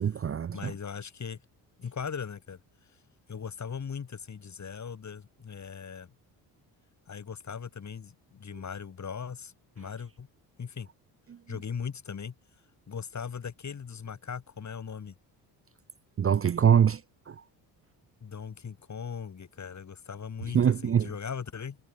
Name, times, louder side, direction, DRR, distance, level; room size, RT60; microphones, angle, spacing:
voice 1, 0.0-0.7 16.2-17.0 17.3-17.4 20.5-21.1, right 8 dB, 30° right, 0.7 m, -24 dB
voice 2, 0.5-1.4 1.8-2.6 3.3-6.1 7.1-10.3 10.6-10.9 11.5-12.3 12.9-15.2 18.2-21.8, left 6 dB, 40° left, 3.8 m, -39 dB
supercardioid pair, 75°, 44 cm